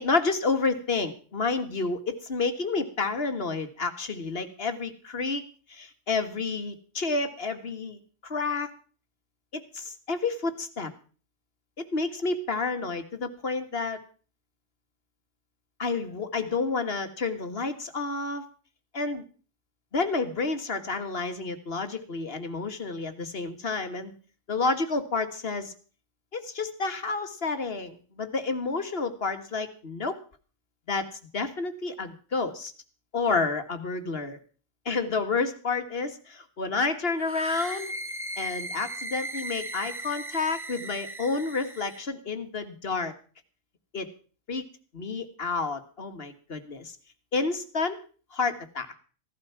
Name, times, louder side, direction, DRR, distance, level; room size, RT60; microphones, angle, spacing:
voice 1, 0.0-5.4 5.7-8.7 9.5-10.9 11.8-14.0 15.8-18.4 18.9-19.2 19.9-24.1 24.5-25.7 26.3-30.2 30.9-31.1 31.3-32.7 33.1-34.4 34.9-37.9 38.4-43.1 43.9-44.1 44.5-44.6 44.9-46.9 47.3-48.0 48.3-48.9, left 4 dB, 50° left, 8 dB, 1.8 m, -30 dB
sound 1, 37.2-42.0, right 1 dB, 10° right, 0.9 m, -37 dB
16.0 x 12.0 x 5.8 m, 0.40 s
omnidirectional pair, 1.3 m